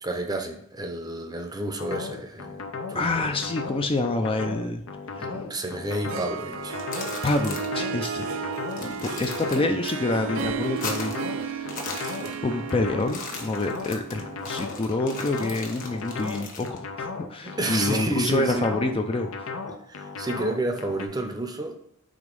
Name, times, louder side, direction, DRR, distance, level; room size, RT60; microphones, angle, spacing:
voice 1, 0.0-3.4 5.2-6.8 17.4-18.9 19.7-21.8, right 2 dB, 20° right, 0.6 m, -31 dB
sound 1, 1.8-21.1, left 4 dB, 75° left, 0.7 m, -36 dB
voice 2, 2.9-4.8 5.2-5.3 7.2-8.5 8.8-11.7 12.4-19.3, left 2 dB, 25° left, 0.4 m, -27 dB
Harp, 5.8-14.8, right 6 dB, 75° right, 0.4 m, -34 dB
sound 2, 6.6-7.8 8.1-8.2 8.6-9.9 10.2-11.3 11.6-12.7 13.0-16.8, left 3 dB, 40° left, 1.2 m, -37 dB
5.1 x 3.5 x 5.3 m
head